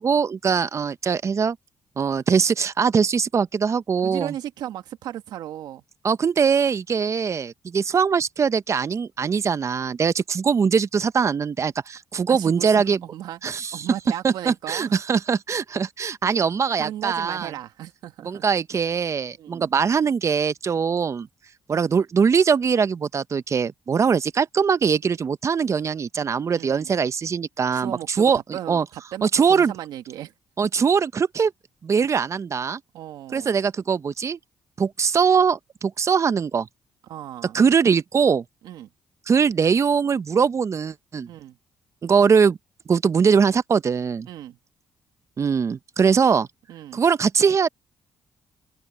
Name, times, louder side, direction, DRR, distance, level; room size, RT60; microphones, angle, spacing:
voice 1, 0.0-1.6 2.0-4.3 6.0-13.0 13.4-13.8 14.2-17.5 18.2-21.3 21.7-28.8 29.2-29.7 30.6-31.5 31.8-32.8 33.3-34.4 34.8-36.7 37.5-38.4 39.3-41.3 42.0-42.6 42.9-44.3 45.4-46.5 46.9-47.7, right 6 dB, 45° right, 0.8 m, -21 dB
voice 2, 4.0-5.8 12.3-15.0 16.8-18.4 19.4-19.7 26.5-26.9 27.7-30.3 32.9-33.6 37.1-37.6 38.6-38.9 41.3-41.6 44.3-44.6 46.7-47.0, right 12 dB, 85° right, 2.0 m, -36 dB
cardioid pair, 70°, 7 cm